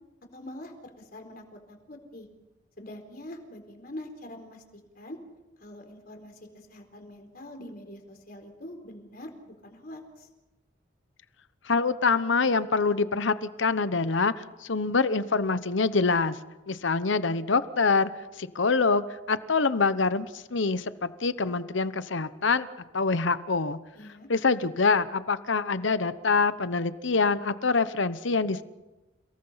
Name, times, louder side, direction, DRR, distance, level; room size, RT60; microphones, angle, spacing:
voice 1, 0.3-2.3 2.8-4.6 4.9-5.2 5.6-6.4 6.7-10.3 23.9-24.3, left 1 dB, 50° left, 4 dB, 4.2 m, -44 dB
voice 2, 11.6-16.4 16.7-18.1 18.4-22.7 22.9-23.8 24.3-28.6, left 4 dB, 75° left, 13 dB, 1.0 m, -25 dB
30.0 x 18.5 x 5.7 m, 1.1 s
head